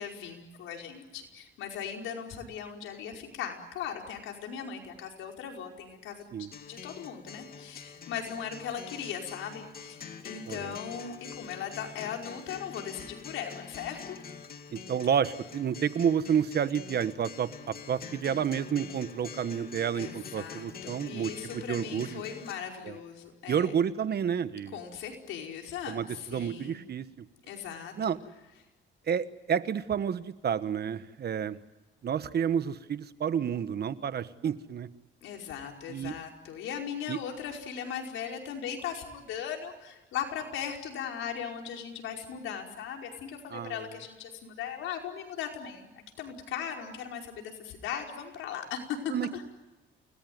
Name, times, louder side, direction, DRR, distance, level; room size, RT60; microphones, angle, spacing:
voice 1, 0.0-14.2 19.9-23.7 24.7-26.8 27.5-28.2 35.2-49.4, left 8 dB, 90° left, 2 dB, 5.1 m, -38 dB
Acoustic guitar, 6.5-22.5, left 6 dB, 50° left, 2.5 m, -45 dB
voice 2, 14.7-22.2 22.8-23.0 23.5-24.8 25.9-27.3 28.0-28.2 29.1-31.6 32.0-34.9 35.9-36.2 37.1-37.2 43.5-43.9 49.1-49.4, right 8 dB, 55° right, 13 dB, 1.4 m, -30 dB
29.5 x 20.0 x 9.4 m, 1.1 s
cardioid pair, 90°, 20 cm